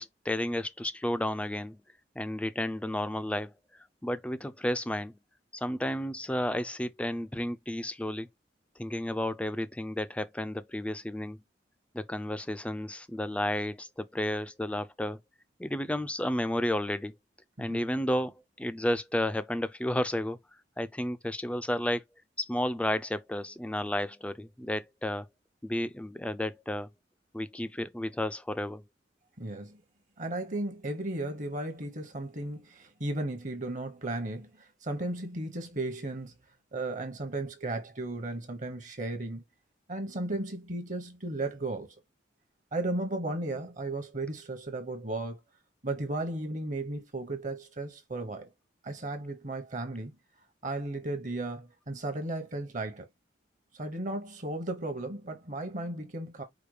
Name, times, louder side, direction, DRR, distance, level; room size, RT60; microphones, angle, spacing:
voice 1, 0.0-1.8 2.2-3.5 4.0-5.1 5.5-8.3 8.8-11.4 11.9-15.2 15.6-17.1 17.6-20.4 20.8-22.0 22.4-25.3 25.6-26.9 27.3-28.8, left 1 dB, 5° left, 0.3 m, -32 dB
voice 2, 29.4-29.8 30.2-36.3 36.7-39.4 39.9-42.0 42.7-45.4 45.8-48.5 48.8-50.1 50.6-53.1 53.7-56.4, right 2 dB, 40° right, 0.9 m, -35 dB
5.0 x 2.2 x 4.7 m
head